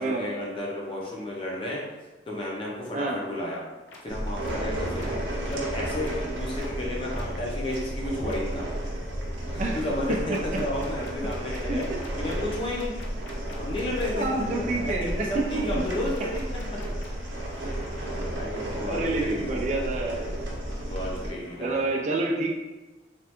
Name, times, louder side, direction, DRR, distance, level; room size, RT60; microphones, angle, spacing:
voice 1, 0.0-2.0 2.3-3.6 4.0-8.6 9.5-11.9 12.2-12.9 13.6-16.8 17.5-17.7 18.0-20.0 20.9-21.9, left 1 dB, 30° left, -3 dB, 0.6 m, -32 dB
sound 1, 3.9-4.0 4.4-4.5 5.0-5.1 5.5-5.6 6.0-6.1 6.6-6.7 7.1-7.2 7.7-7.8 8.3-8.4 10.3-14.1 16.1-17.3, left 3 dB, 75° left, 0.5 m, -47 dB
sound 2, 4.1-21.3, right 1 dB, 70° right, 0.6 m, -33 dB
sound 3, 4.2-21.9, equal, 45° left, 1.0 m, -48 dB
voice 2, 14.1-15.6 18.9-20.4 21.6-22.5, right 3 dB, 40° right, 0 dB, 0.3 m, -28 dB
3.2 x 2.4 x 2.8 m, 1.2 s
head